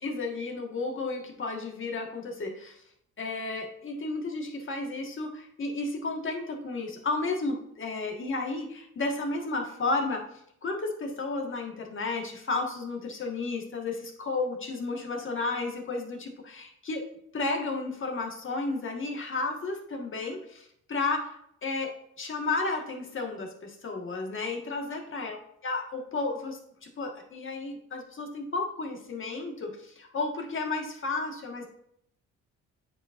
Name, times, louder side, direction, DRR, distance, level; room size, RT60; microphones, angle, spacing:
voice 1, 0.0-2.7 3.2-10.2 10.6-17.0 17.3-21.9 22.2-25.4 25.6-31.7, left 3 dB, 40° left, 2 dB, 1.6 m, -32 dB
8.6 x 5.1 x 2.5 m, 0.70 s
cardioid pair, 90°, 30 cm